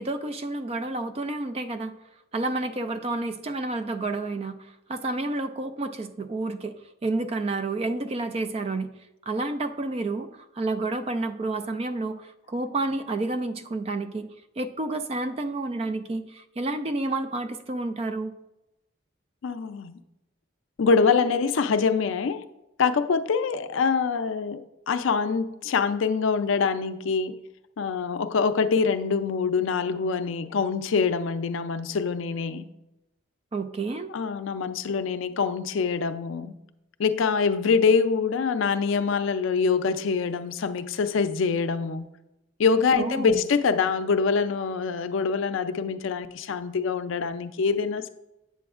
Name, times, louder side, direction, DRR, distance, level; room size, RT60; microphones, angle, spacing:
voice 1, 0.0-1.9 2.3-6.7 7.0-8.9 9.3-10.3 10.5-14.3 14.6-18.3 33.5-34.1 42.9-43.4, right 2 dB, 30° right, 0.3 m, -30 dB
voice 2, 19.4-20.0 20.8-22.4 22.8-27.4 27.8-32.7 34.1-36.5 37.0-42.1 42.6-48.1, left 5 dB, 75° left, 0.4 m, -25 dB
8.3 x 6.9 x 2.4 m
head